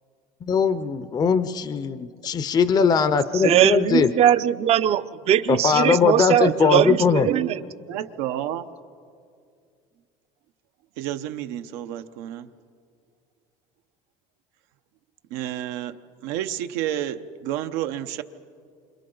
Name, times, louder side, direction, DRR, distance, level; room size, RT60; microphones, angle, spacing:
voice 1, 0.5-4.1 5.5-7.3, left 6 dB, 25° left, 13 dB, 0.5 m, -20 dB
voice 2, 3.3-7.6, right 11 dB, 40° right, 14 dB, 0.5 m, -20 dB
voice 3, 6.4-7.6 7.9-8.7 11.0-12.5 15.3-18.2, right 12 dB, 90° right, 9 dB, 0.8 m, -30 dB
28.0 x 26.5 x 3.9 m, 2.3 s
cardioid pair, 140°, 16 cm